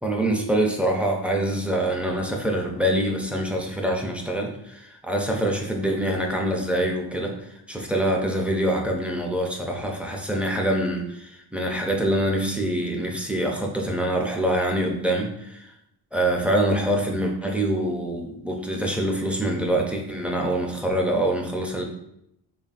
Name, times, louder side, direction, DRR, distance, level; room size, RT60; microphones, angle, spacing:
voice 1, 0.0-7.3 7.7-15.7 16.1-21.8, right 1 dB, 5° right, 0 dB, 0.4 m, -25 dB
4.0 x 3.5 x 2.4 m, 0.78 s
wide cardioid pair, 145°, 43 cm